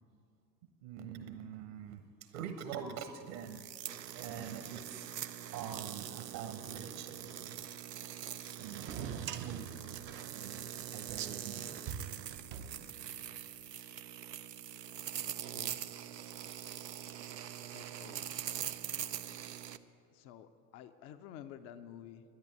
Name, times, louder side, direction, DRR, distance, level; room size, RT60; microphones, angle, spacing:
voice 1, 0.8-3.6 3.9-5.1 5.5-7.6 8.6-9.7 10.3-11.7, right 8 dB, 50° right, 7 dB, 1.1 m, -45 dB
sound 1, 3.4-19.8, right 10 dB, 85° right, 0.6 m, -43 dB
sound 2, 8.8-13.3, right 8 dB, 25° right, 0.5 m, -44 dB
voice 2, 15.5-15.8 17.5-18.2 19.3-19.4 20.1-22.2, left 10 dB, 30° left, 9 dB, 0.5 m, -51 dB
11.0 x 10.5 x 8.0 m, 2.5 s
figure-of-eight pair, 85°, 48 cm